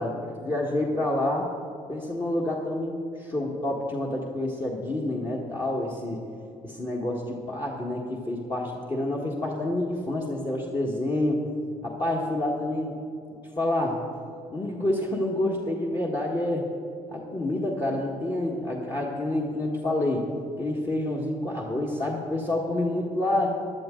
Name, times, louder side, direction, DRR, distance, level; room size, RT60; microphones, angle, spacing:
voice 1, 0.0-1.5 1.9-6.2 6.6-11.4 11.8-12.9 13.6-14.0 14.5-16.7 17.1-20.2 20.6-23.5, left 1 dB, 30° left, -2 dB, 1.7 m, -28 dB
15.0 x 11.5 x 3.9 m, 2.6 s
supercardioid pair, 70°, 16 cm